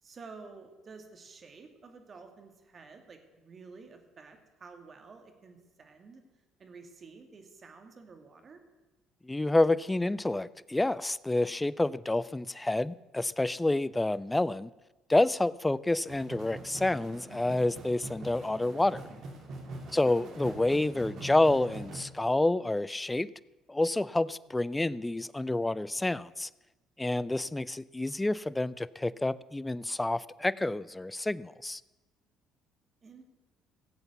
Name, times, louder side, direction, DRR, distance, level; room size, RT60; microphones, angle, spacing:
voice 1, 0.0-6.2 6.6-8.6 19.8-20.1 33.0-33.2, right 4 dB, 40° right, 5 dB, 2.4 m, -51 dB
voice 2, 9.3-14.7 15.1-19.1 19.9-23.3 23.7-26.5 27.0-31.8, left 2 dB, 15° left, 19 dB, 0.5 m, -28 dB
sound 1, 16.1-22.0, right 2 dB, 60° right, 2.6 m, -44 dB
17.0 x 8.0 x 6.9 m, 1.1 s
hypercardioid pair, 60°, 0 cm